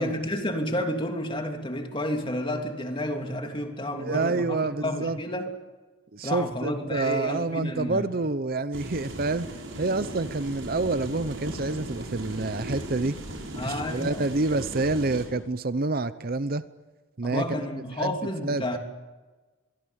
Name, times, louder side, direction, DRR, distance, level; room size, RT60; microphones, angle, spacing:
voice 1, 0.0-5.5 6.2-8.1 13.6-14.2 17.2-18.8, left 1 dB, 25° left, 4 dB, 3.0 m, -31 dB
voice 2, 3.9-5.2 6.1-9.5 9.8-13.2 13.6-16.6 17.2-17.7 18.0-18.2 18.4-18.8, right 3 dB, 45° right, 14 dB, 0.8 m, -28 dB
sound 1, 8.7-15.3, right 1 dB, 70° right, 6.5 m, -37 dB
23.5 x 23.5 x 8.8 m, 1.2 s
head